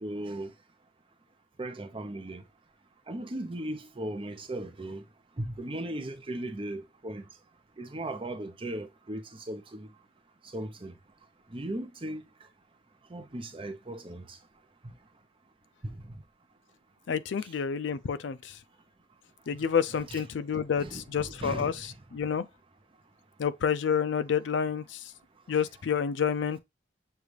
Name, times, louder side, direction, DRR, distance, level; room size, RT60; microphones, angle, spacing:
voice 1, 0.0-0.5 1.6-2.4 3.1-5.0 5.4-7.3 7.8-9.9 10.5-10.9 11.5-12.2 13.1-14.4 14.8-14.9 15.8-16.2 19.6-19.7 20.1-20.2 20.8-21.9, right 1 dB, 30° right, 0.6 m, -37 dB
voice 2, 17.1-18.4 19.5-22.4 23.4-25.0 25.5-26.6, left 7 dB, 65° left, 0.4 m, -29 dB
6.7 x 2.4 x 3.2 m
head